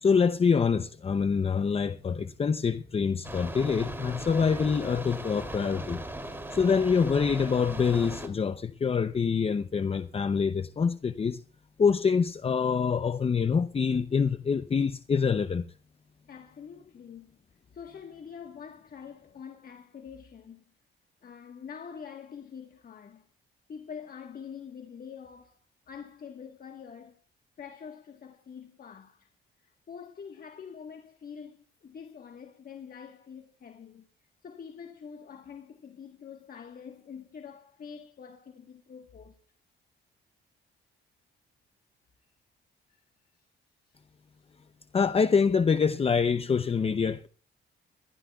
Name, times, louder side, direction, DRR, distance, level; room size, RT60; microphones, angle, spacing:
voice 1, 0.0-6.0 6.5-11.4 11.8-15.6 44.9-47.3, left 6 dB, 30° left, 0.6 m, -25 dB
sound 1, 3.2-8.3, right 1 dB, 10° right, 3.0 m, -39 dB
voice 2, 16.3-17.4 17.7-20.6 21.2-23.3 23.7-25.6 25.9-27.2 27.6-29.3 29.6-34.1 34.4-39.4 42.9-43.0 43.3-43.5 43.9-44.0, left 7 dB, 45° left, 1.4 m, -45 dB
23.0 x 14.0 x 2.4 m
cardioid pair, 90°, 20 cm